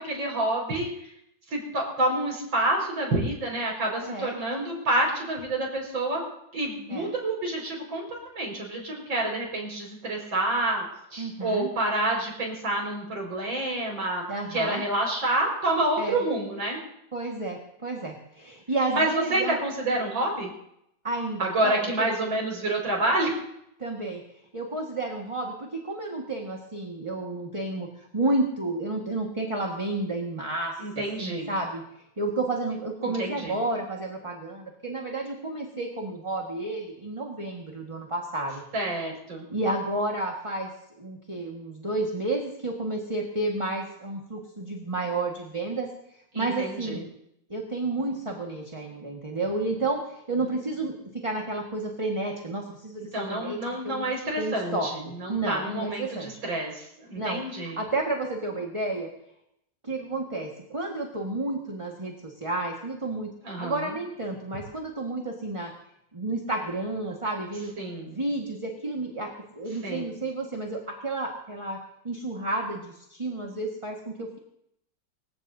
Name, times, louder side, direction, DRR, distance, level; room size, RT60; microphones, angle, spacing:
voice 1, 0.1-1.1 1.5-6.2 6.5-10.9 11.1-14.2 14.5-16.8 18.9-20.5 21.4-23.4 30.8-31.5 33.0-33.5 38.7-39.5 46.3-47.0 53.1-57.8 63.4-63.9 67.8-68.1 69.8-70.1, right 1 dB, 80° right, -1 dB, 6.1 m, -28 dB
voice 2, 4.0-4.4 6.9-7.1 11.2-11.7 14.3-14.8 16.0-16.2 17.1-19.6 21.0-22.1 23.8-24.2 24.5-31.8 32.2-38.6 39.5-40.7 41.0-45.9 46.3-47.1 47.5-50.9 51.2-53.6 53.8-54.1 54.4-56.3 57.2-59.1 59.8-63.3 63.6-65.7 66.1-67.7 68.0-71.8 72.0-74.4, right 2 dB, 15° right, 0 dB, 1.6 m, -31 dB
25.0 x 16.0 x 2.8 m, 0.78 s
omnidirectional pair, 2.1 m